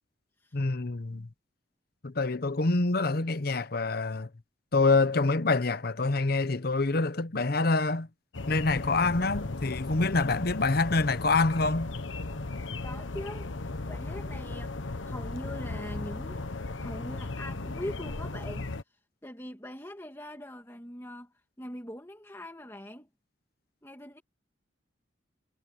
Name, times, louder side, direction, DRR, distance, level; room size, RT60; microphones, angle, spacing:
voice 1, 0.5-1.3 2.0-4.3 4.7-8.1 8.5-11.9, left 3 dB, 55° left, 0.9 m, -26 dB
sound 1, 8.3-18.8, left 2 dB, 85° left, 1.2 m, -36 dB
voice 2, 12.8-13.5 13.9-23.1 23.8-24.2, left 1 dB, 15° left, 2.6 m, -42 dB
head